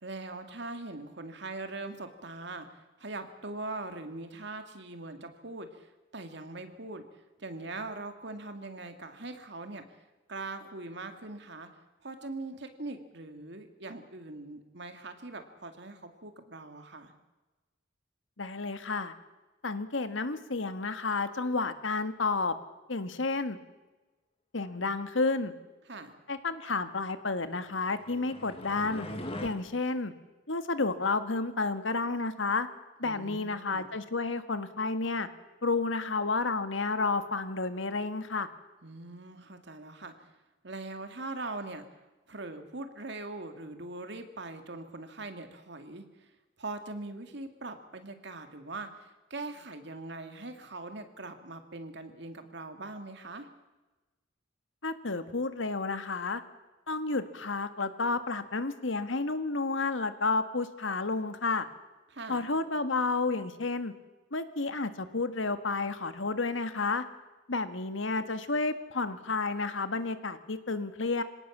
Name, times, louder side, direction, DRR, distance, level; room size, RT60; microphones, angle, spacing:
voice 1, 0.0-7.0 7.4-10.0 10.3-11.7 12.0-17.1 25.9-26.1 33.0-33.9 38.8-40.3 40.6-41.9 42.3-46.3 46.6-53.5 62.1-62.5, right 2 dB, 60° right, 7 dB, 2.3 m, -41 dB
voice 2, 18.4-19.1 19.6-22.5 22.9-23.6 24.5-25.5 26.3-29.1 29.4-30.1 30.5-32.7 33.0-35.3 35.6-38.5 54.8-56.4 56.9-61.7 62.3-63.9 64.3-67.0 67.5-71.2, left 3 dB, 80° left, 10 dB, 1.6 m, -31 dB
sound 1, 27.7-29.5, left 1 dB, 30° left, 1.9 m, -41 dB
26.0 x 18.0 x 7.4 m, 1.2 s
head